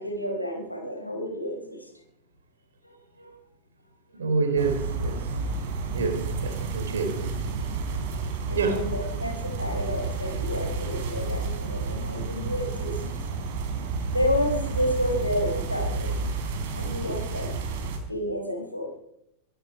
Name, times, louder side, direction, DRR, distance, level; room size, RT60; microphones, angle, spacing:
voice 1, 0.0-1.9 2.8-3.3 8.5-13.0 14.1-16.3 16.7-17.5 18.1-19.0, equal, 90° left, 4.4 m, -30 dB
voice 2, 4.1-5.3 5.9-7.5 8.5-8.8, right 4 dB, 65° right, 3.8 m, -28 dB
sound 1, 4.6-18.0, right 4 dB, 50° right, 4.3 m, -31 dB
23.0 x 11.5 x 5.0 m
figure-of-eight pair, 90°, 0 cm